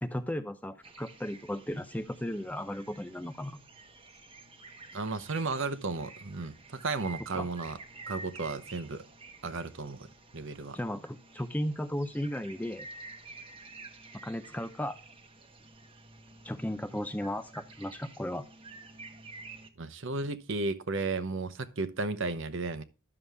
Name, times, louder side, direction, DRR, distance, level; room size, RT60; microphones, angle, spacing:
voice 1, 0.0-3.6 7.3-7.5 10.7-12.9 14.2-14.9 16.4-18.4, equal, 5° left, 0.5 m, -35 dB
sound 1, 0.8-19.7, right 3 dB, 25° right, 0.9 m, -50 dB
voice 2, 4.9-7.8 8.1-9.0 9.4-10.8 19.8-22.8, right 3 dB, 55° right, 0.8 m, -34 dB
11.0 x 6.9 x 3.4 m
head